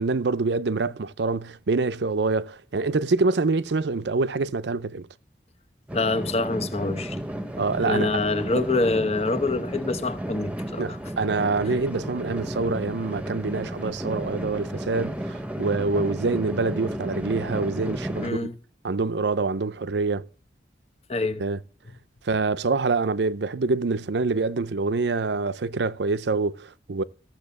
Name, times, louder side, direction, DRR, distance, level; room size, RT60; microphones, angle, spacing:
voice 1, 0.0-5.1 7.6-8.1 8.5-8.7 10.8-18.4 18.8-20.3 21.4-21.6 22.3-27.0, right 3 dB, 75° right, 0.6 m, -26 dB
voice 2, 5.9-7.2 7.8-11.0 18.2-18.5 21.1-21.4, left 3 dB, 35° left, 0.9 m, -26 dB
sound 1, 5.9-18.3, right 1 dB, 5° right, 1.0 m, -33 dB
14.5 x 7.0 x 7.0 m
head